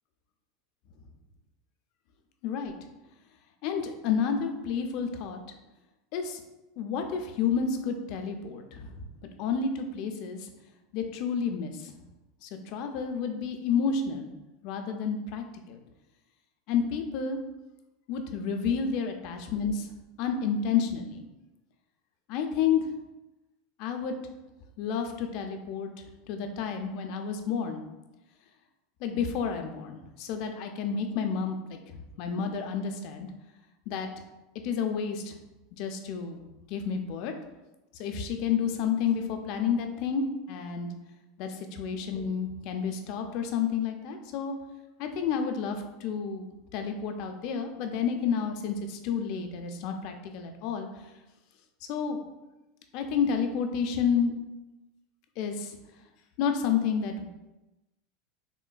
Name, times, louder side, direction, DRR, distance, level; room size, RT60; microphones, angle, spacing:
voice 1, 2.4-2.7 3.6-5.4 6.1-6.4 6.8-9.0 9.4-10.5 10.9-11.9 12.4-14.3 14.6-15.8 16.7-17.4 18.1-19.9 20.2-21.2 22.3-22.9 23.8-24.1 24.8-25.9 26.3-27.8 29.0-33.3 33.9-34.1 34.6-35.3 35.8-36.4 36.7-37.3 38.0-40.9 41.4-44.5 45.0-50.9 51.9-52.2 52.9-54.3 55.4-55.8 56.4-57.3, left 6 dB, 55° left, 5 dB, 0.4 m, -30 dB
3.6 x 2.4 x 2.3 m, 1.0 s
supercardioid pair, 140°, 0 cm